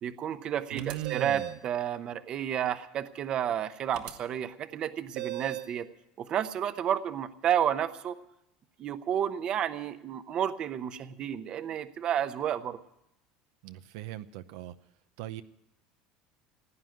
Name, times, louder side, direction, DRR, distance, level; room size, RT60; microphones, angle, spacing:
voice 1, 0.0-5.9 6.2-8.2 8.8-12.8, right 9 dB, 35° right, 12 dB, 0.8 m, -31 dB
voice 2, 0.7-1.6 13.6-14.7 15.2-15.4, right 14 dB, 75° right, 11 dB, 0.6 m, -38 dB
sound 1, 0.8-1.7 3.9-4.1 5.2-5.8, right 15 dB, 55° right, 1.4 m, -36 dB
16.5 x 9.4 x 9.0 m, 0.81 s
cardioid pair, 155°, 3 cm